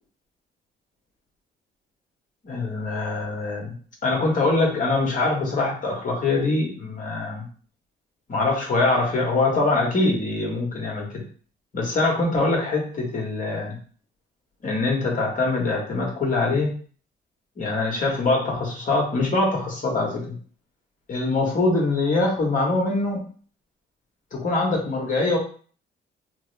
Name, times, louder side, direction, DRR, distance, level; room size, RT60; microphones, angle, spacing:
voice 1, 2.4-3.7 4.0-7.4 8.3-11.2 11.7-13.8 14.6-16.7 17.6-20.3 21.1-23.2 24.3-25.4, left 3 dB, 40° left, -2 dB, 1.4 m, -23 dB
3.4 x 2.0 x 3.3 m, 0.43 s
cardioid pair, 90°, 20 cm